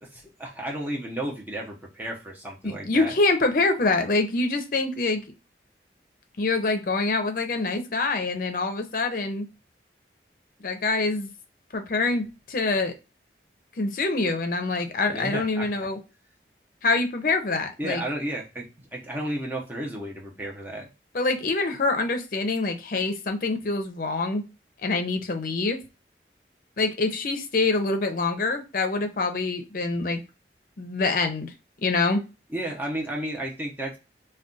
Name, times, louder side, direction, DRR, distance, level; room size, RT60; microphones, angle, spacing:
voice 1, 0.0-3.1 15.1-15.7 17.8-20.9 32.5-34.0, right 1 dB, 10° right, -2 dB, 0.7 m, -33 dB
voice 2, 2.6-5.2 6.4-9.5 10.6-11.3 11.7-12.9 13.8-16.0 16.8-18.0 21.1-24.4 24.8-25.8 26.8-30.2 30.8-31.5 31.8-32.2, left 3 dB, 50° left, 6 dB, 0.5 m, -25 dB
2.4 x 2.2 x 3.7 m, 0.29 s
head